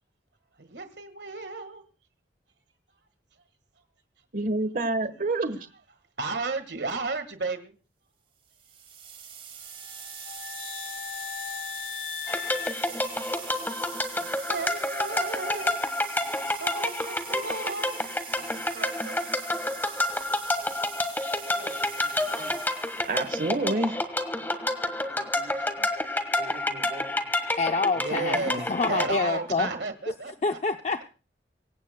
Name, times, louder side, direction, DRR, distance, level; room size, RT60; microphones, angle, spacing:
voice 1, 0.6-1.8 6.2-7.7 11.2-11.3 14.5-15.8 16.5-18.0 18.4-19.2 21.5-21.9 24.4-24.7 25.2-25.3 25.6-25.8 26.1-26.6 27.3-27.5 28.0-30.6, right 3 dB, 75° right, 1.6 m, -34 dB
voice 2, 4.3-5.7 22.0-22.6 23.1-24.0 24.4-24.5 25.1-25.9 26.3-27.1, right 2 dB, 50° right, 1.3 m, -30 dB
sound 1, 8.5-23.5, right 8 dB, 30° right, 2.1 m, -43 dB
sound 2, 9.7-13.8, left 10 dB, 85° left, 0.6 m, -38 dB
sound 3, 12.3-29.1, left 2 dB, 10° left, 1.4 m, -29 dB
voice 3, 27.6-29.7 30.4-31.0, left 4 dB, 40° left, 0.6 m, -27 dB
25.0 x 16.0 x 2.2 m
head